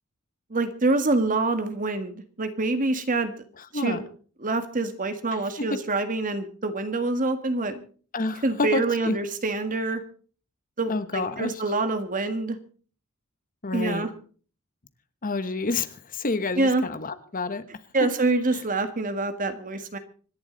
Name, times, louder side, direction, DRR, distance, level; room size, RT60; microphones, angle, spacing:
voice 1, 0.5-3.3 3.7-4.0 4.4-7.8 8.4-10.0 10.8-12.6 13.7-14.1 16.6-16.8 17.9-20.0, right 2 dB, 40° right, 9 dB, 1.7 m, -26 dB
voice 2, 5.3-5.8 8.1-9.2 10.9-11.6 13.6-14.1 15.2-17.6 18.0-18.1, left 3 dB, 40° left, 12 dB, 1.1 m, -29 dB
25.5 x 11.0 x 4.0 m, 0.41 s
head